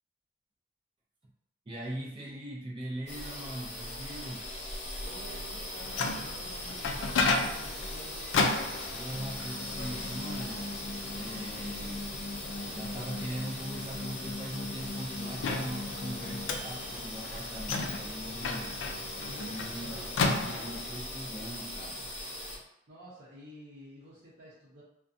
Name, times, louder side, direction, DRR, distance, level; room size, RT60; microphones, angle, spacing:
voice 1, 1.7-4.5 4.9-5.0 8.9-10.7 11.2-12.1 12.6-18.8 19.4-22.1, right 1 dB, 25° right, -4 dB, 0.4 m, -41 dB
sound 1, 3.1-22.6, left 1 dB, 35° left, 0.5 m, -40 dB
voice 2, 5.0-8.5 19.3-20.1 22.9-24.8, right 1 dB, 60° right, -11 dB, 0.7 m, -51 dB
Microwave oven, 5.6-21.0, left 3 dB, 90° left, 0.3 m, -35 dB
2.5 x 2.2 x 2.6 m, 0.77 s
head